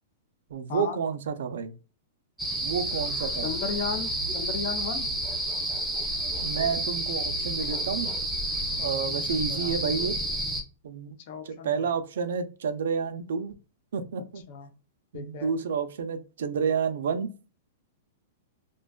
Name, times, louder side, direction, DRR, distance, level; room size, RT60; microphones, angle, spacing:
voice 1, 0.5-1.7 2.6-3.5 6.4-8.1 8.8-10.2 10.8-11.2 11.4-13.6 13.9-14.4 15.1-17.3, right 6 dB, 80° right, 9 dB, 0.4 m, -30 dB
sound 1, 2.4-10.6, right 1 dB, 5° right, 0.4 m, -30 dB
voice 2, 3.4-5.1 9.1-9.7 11.3-11.8 14.5-14.7 15.1-15.5, left 6 dB, 50° left, 6 dB, 0.5 m, -35 dB
2.4 x 2.2 x 2.2 m, 0.33 s
hypercardioid pair, 150°, 0 cm